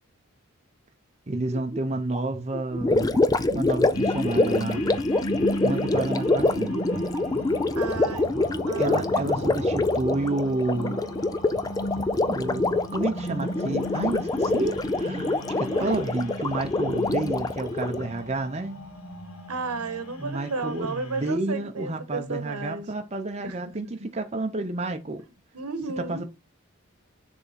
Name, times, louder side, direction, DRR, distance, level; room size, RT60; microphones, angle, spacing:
voice 1, 1.3-3.2 3.5-4.9 5.6-6.8 8.8-11.0 12.3-18.8 20.2-25.2 26.0-26.2, right 2 dB, 30° right, 0.7 m, -30 dB
sound 1, 1.5-9.8, right 1 dB, 10° right, 1.2 m, -38 dB
Gurgling, 2.8-18.1, left 2 dB, 15° left, 0.4 m, -25 dB
sound 2, 3.9-21.3, left 1 dB, 80° left, 1.6 m, -36 dB
voice 2, 5.6-6.3 7.8-8.3 8.6-9.1 15.6-16.1 19.5-22.9 23.4-24.1 25.5-26.2, right 3 dB, 90° right, 1.3 m, -34 dB
6.8 x 3.6 x 4.2 m
head